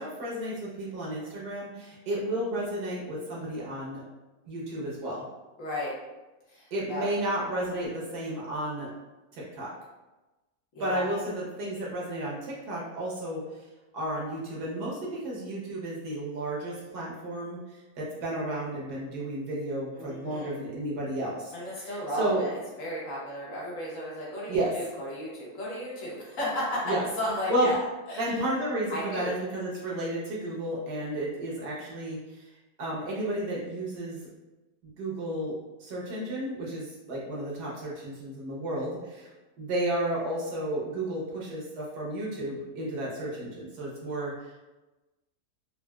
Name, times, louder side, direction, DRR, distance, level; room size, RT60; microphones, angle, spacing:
voice 1, 0.0-4.0 4.5-5.2 6.7-8.9 9.3-9.7 10.8-13.4 13.9-22.4 24.5-24.7 26.8-27.0 27.5-27.7 28.2-32.5 32.8-34.3 34.8-39.3 39.6-44.6, right 1 dB, 85° right, -5 dB, 1.5 m, -32 dB
voice 2, 5.6-5.9 6.5-7.0 10.7-11.1 20.0-20.6 21.5-27.8 28.1-28.4 28.9-29.3, left 1 dB, 60° left, -5 dB, 1.2 m, -34 dB
4.1 x 2.1 x 2.2 m, 1.1 s
omnidirectional pair, 1.6 m